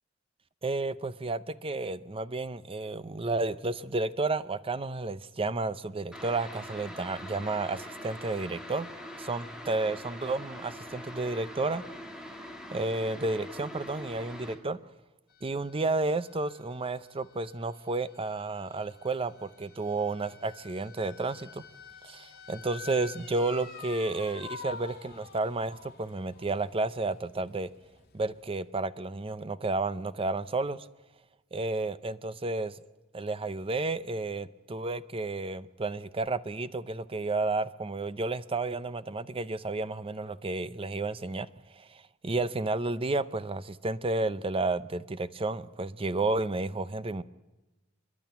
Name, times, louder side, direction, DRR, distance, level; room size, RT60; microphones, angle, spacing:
voice 1, 0.6-8.9 9.2-11.8 12.7-14.8 15.4-21.6 22.0-27.7 28.1-30.9 31.5-32.7 33.1-41.5 41.8-47.2, right 3 dB, 25° right, 15 dB, 0.6 m, -31 dB
sound 1, 6.1-14.6, left 1 dB, 5° right, 2.3 m, -43 dB
sound 2, 15.3-28.6, left 6 dB, 50° left, 2.9 m, -49 dB
30.0 x 11.0 x 9.3 m, 1.1 s
head